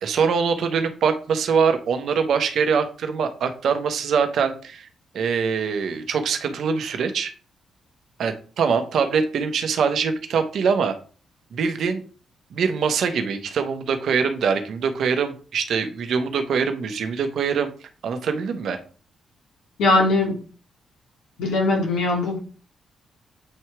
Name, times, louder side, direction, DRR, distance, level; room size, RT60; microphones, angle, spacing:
voice 1, 0.0-4.9 5.1-7.3 8.2-10.9 11.5-12.0 12.5-17.7 18.0-18.8, right 6 dB, 70° right, 7 dB, 1.0 m, -23 dB
voice 2, 19.8-20.3 21.4-22.4, left 2 dB, 85° left, -1 dB, 2.7 m, -20 dB
7.8 x 2.9 x 4.6 m, 0.38 s
cardioid pair, 65°, 0 cm